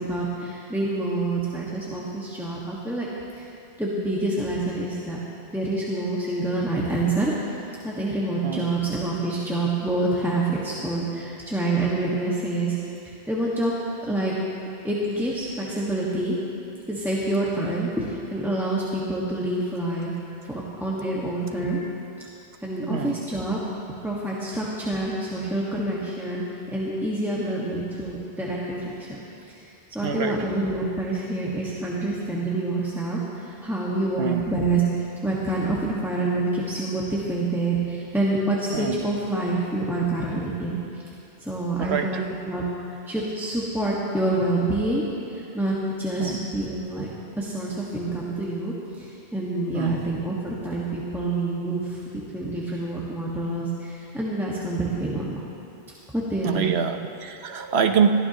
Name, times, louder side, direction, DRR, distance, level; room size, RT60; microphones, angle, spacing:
voice 1, 0.0-3.1 3.3-3.5 3.8-5.2 5.5-7.3 7.8-12.8 13.0-13.7 14.0-14.4 14.8-16.4 16.9-20.2 20.4-21.8 22.6-23.6 24.0-29.2 29.5-34.8 35.2-40.8 41.4-42.2 42.5-47.1 47.4-55.4 56.1-56.8, right 2 dB, ahead, -6 dB, 1.5 m, -27 dB
voice 2, 30.0-30.4 34.2-34.4 38.7-39.0 41.8-42.2 46.2-46.4 49.7-49.9 56.4-58.1, right 7 dB, 80° right, 6 dB, 1.1 m, -25 dB
21.5 x 15.0 x 3.0 m, 2.7 s
omnidirectional pair, 1.1 m